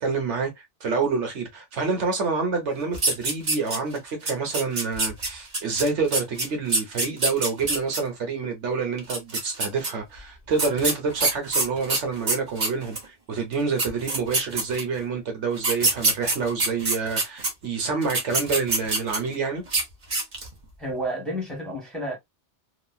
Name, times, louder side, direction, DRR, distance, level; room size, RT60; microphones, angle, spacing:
voice 1, 0.0-19.6, right 4 dB, 80° right, 1.3 m, -27 dB
sound 1, 2.9-4.0 4.3-8.0 9.0-9.9 10.6-13.1 13.5-13.6 13.8-15.0 15.6-17.5 18.0-19.3 19.7-19.8 20.1-20.5, right 3 dB, 40° right, 1.0 m, -25 dB
voice 2, 20.8-22.2, right 1 dB, ahead, 1.1 m, -30 dB
3.0 x 2.5 x 2.2 m
omnidirectional pair, 1.2 m